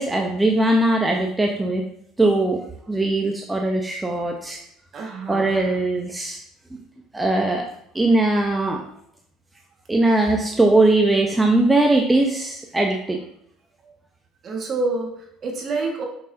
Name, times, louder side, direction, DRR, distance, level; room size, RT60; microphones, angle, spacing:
voice 1, 0.0-1.8 2.2-2.6 2.9-4.6 5.3-6.4 7.1-7.6 7.9-8.8 9.9-13.2, right 2 dB, 15° right, 1 dB, 0.9 m, -20 dB
voice 2, 4.9-5.9 8.8-8.9 13.8-13.9 14.4-16.1, right 3 dB, 45° right, 1 dB, 1.9 m, -28 dB
6.4 x 6.2 x 2.9 m, 0.70 s
hypercardioid pair, 70°, 0 cm